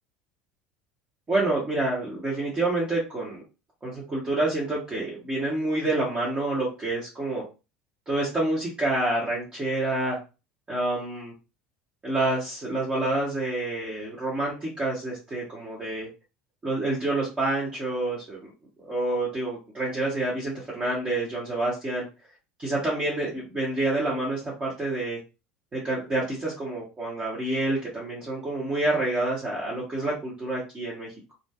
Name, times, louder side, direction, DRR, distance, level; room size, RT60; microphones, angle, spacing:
voice 1, 1.3-3.4 3.8-7.4 8.1-10.2 10.7-11.3 12.0-16.1 16.6-18.5 18.8-22.1 22.6-25.2 25.7-31.3, right 2 dB, 25° right, -5 dB, 1.0 m, -28 dB
2.5 x 2.4 x 2.3 m, 0.30 s
figure-of-eight pair, 65°, 5 cm